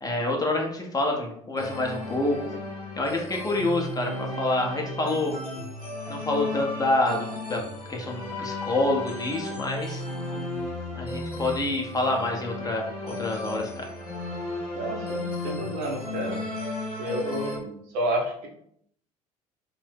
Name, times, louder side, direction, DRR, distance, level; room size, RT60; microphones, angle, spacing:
voice 1, 0.0-2.4 3.0-5.3 6.1-7.6 7.9-10.0 10.9-12.9 13.2-13.8, left 2 dB, 20° left, 1 dB, 0.6 m, -27 dB
sound 1, 1.6-17.6, left 2 dB, 85° left, 0.7 m, -34 dB
voice 2, 14.7-16.4 17.0-18.5, right 1 dB, 55° right, 0 dB, 0.7 m, -30 dB
2.7 x 2.2 x 3.3 m, 0.68 s
figure-of-eight pair, 60°, 19 cm